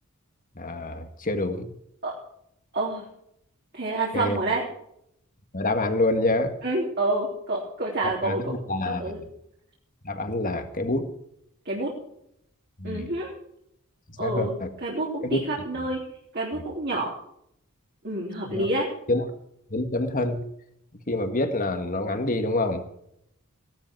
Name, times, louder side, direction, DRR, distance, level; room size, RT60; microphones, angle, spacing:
voice 1, 0.6-1.7 4.1-4.4 5.5-6.5 8.2-9.1 10.0-11.1 12.8-13.1 14.2-14.7 15.2-15.5 18.4-18.7 19.1-19.3 19.7-20.4 21.1-22.9, left 2 dB, 40° left, 7 dB, 1.8 m, -27 dB
voice 2, 2.7-3.1 3.7-4.6 6.6-8.6 8.9-9.2 11.7-11.9 12.8-13.3 14.2-14.5 14.8-16.0 16.3-17.1 18.0-18.9, right 2 dB, 45° right, -3 dB, 3.6 m, -28 dB
17.0 x 12.5 x 4.7 m, 0.74 s
head